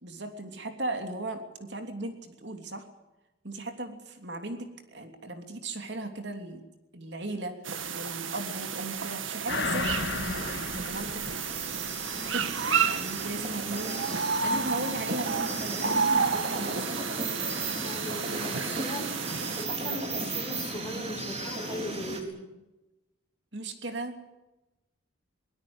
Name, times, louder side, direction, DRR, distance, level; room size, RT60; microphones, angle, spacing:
voice 1, 0.0-2.9 3.4-6.6 6.9-7.6 7.9-11.2 12.1-12.5 12.8-14.1 14.4-15.3 15.6-17.0 23.5-24.3, right 2 dB, 60° right, 6 dB, 3.1 m, -37 dB
sound 1, 7.6-19.7, right 5 dB, 85° right, 2.1 m, -31 dB
sound 2, 9.5-12.4 12.8-12.9, left 3 dB, 60° left, 2.2 m, -34 dB
sound 3, 10.0-22.2, right 2 dB, 30° right, 4.0 m, -36 dB
voice 2, 17.8-19.1 19.6-22.4, left 1 dB, 20° left, 3 dB, 5.6 m, -39 dB
23.5 x 20.0 x 8.0 m, 1.0 s
head